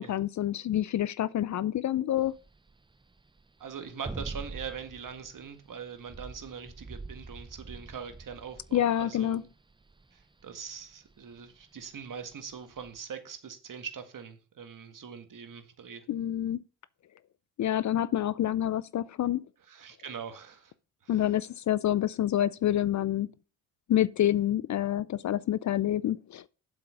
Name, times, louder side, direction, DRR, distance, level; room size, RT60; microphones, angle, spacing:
voice 1, 0.0-2.3 8.7-9.4 16.1-16.6 17.6-19.4 21.1-23.3 23.9-26.4, left 12 dB, 45° left, 0.5 m, -27 dB
sound 1, 2.2-13.0, right 3 dB, 10° right, 0.6 m, -45 dB
voice 2, 3.6-9.4 10.1-16.1 19.7-20.7 21.0-21.2, right 6 dB, 50° right, 1.8 m, -42 dB
7.7 x 5.9 x 5.6 m
supercardioid pair, 50°, 41 cm